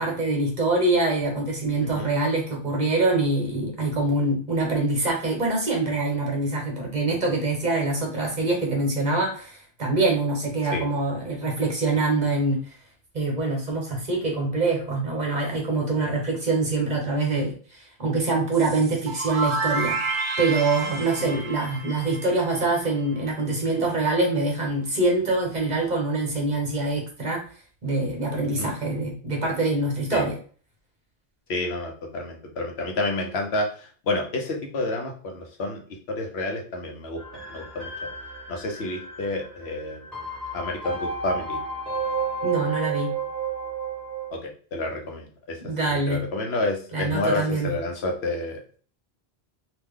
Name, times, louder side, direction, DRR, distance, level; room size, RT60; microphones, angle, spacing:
voice 1, 0.0-12.6 13.1-27.4 27.8-30.4 42.4-43.1 45.6-46.3 46.9-47.7, right 2 dB, 45° right, 0 dB, 1.2 m, -25 dB
voice 2, 1.8-2.2 10.7-10.8 21.3-21.4 28.6-28.7 30.1-30.3 31.5-35.8 36.1-37.2 37.5-37.9 38.5-40.1 40.5-41.6 44.3-45.6 45.8-48.8, left 2 dB, 90° left, 2 dB, 1.1 m, -29 dB
sound 1, 18.5-23.3, right 3 dB, 60° right, 0.7 m, -30 dB
sound 2, 37.2-44.3, right 4 dB, ahead, 1.2 m, -31 dB
2.9 x 2.5 x 3.5 m, 0.42 s
omnidirectional pair, 1.0 m